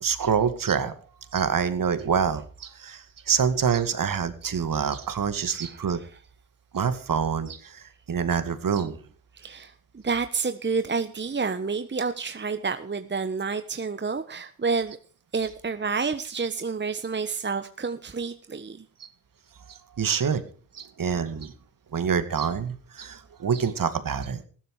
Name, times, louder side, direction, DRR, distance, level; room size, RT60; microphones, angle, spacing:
voice 1, 0.0-0.9 1.3-6.0 6.7-9.0 19.7-20.4 20.7-21.5 21.9-24.4, right 7 dB, 50° right, 11 dB, 2.2 m, -26 dB
voice 2, 9.3-15.0 15.3-18.8, right 5 dB, 25° right, 10 dB, 1.3 m, -29 dB
15.5 x 13.0 x 4.9 m, 0.41 s
hypercardioid pair, 45°, 42 cm